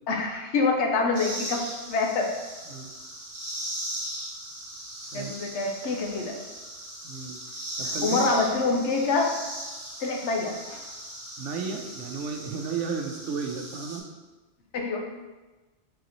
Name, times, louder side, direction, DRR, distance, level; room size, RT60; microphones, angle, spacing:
voice 1, 0.1-2.3 5.1-6.4 7.8-9.3 10.0-10.9 14.7-15.0, left 3 dB, 70° left, 2 dB, 0.9 m, -26 dB
sound 1, 1.1-14.0, right 1 dB, 25° right, 0.8 m, -38 dB
voice 2, 5.0-5.3 7.0-7.4 7.8-8.2 11.4-14.1, right 5 dB, 75° right, 3 dB, 0.9 m, -33 dB
4.0 x 2.9 x 3.8 m, 1.2 s
omnidirectional pair, 1.3 m